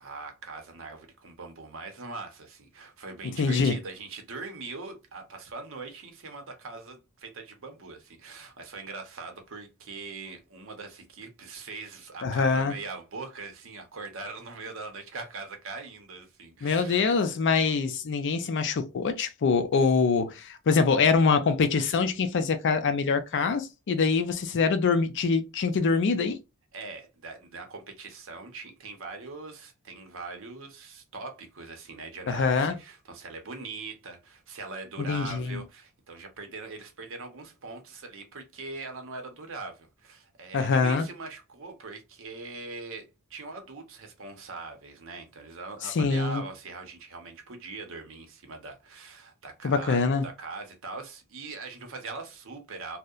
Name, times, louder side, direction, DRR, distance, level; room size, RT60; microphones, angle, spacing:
voice 1, 0.0-17.1 24.0-24.2 26.7-53.0, right 3 dB, 65° right, 0.7 m, -41 dB
voice 2, 3.4-3.8 12.2-12.7 16.6-26.4 32.3-32.7 35.1-35.6 40.5-41.1 45.8-46.4 49.6-50.2, left 4 dB, 55° left, 0.4 m, -24 dB
2.7 x 2.0 x 2.3 m
head